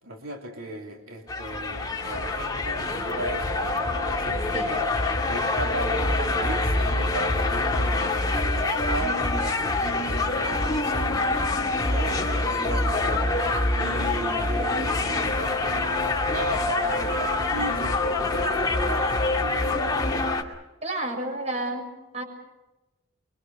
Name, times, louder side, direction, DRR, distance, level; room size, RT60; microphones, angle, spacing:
voice 1, 0.0-4.9 5.3-13.5 13.8-20.2, right 1 dB, 80° right, 1 dB, 3.0 m, -36 dB
sound 1, 1.3-20.4, left 2 dB, 20° left, 2.3 m, -25 dB
voice 2, 20.8-21.8 22.1-22.2, right 1 dB, 30° right, 3 dB, 6.6 m, -30 dB
25.5 x 24.0 x 6.4 m, 1.1 s
head